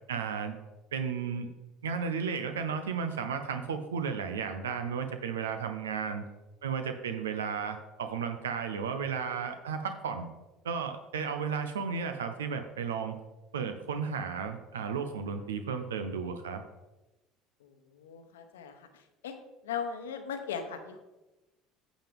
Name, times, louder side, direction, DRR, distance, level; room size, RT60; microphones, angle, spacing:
voice 1, 0.1-0.5 0.9-1.5 1.8-6.2 6.6-10.3 10.6-13.2 13.5-16.6, right 6 dB, 85° right, 7 dB, 0.6 m, -34 dB
voice 2, 17.6-19.3 19.6-21.0, left 7 dB, 80° left, 7 dB, 0.9 m, -39 dB
8.9 x 7.3 x 3.5 m, 1.1 s
hypercardioid pair, 65°, 0 cm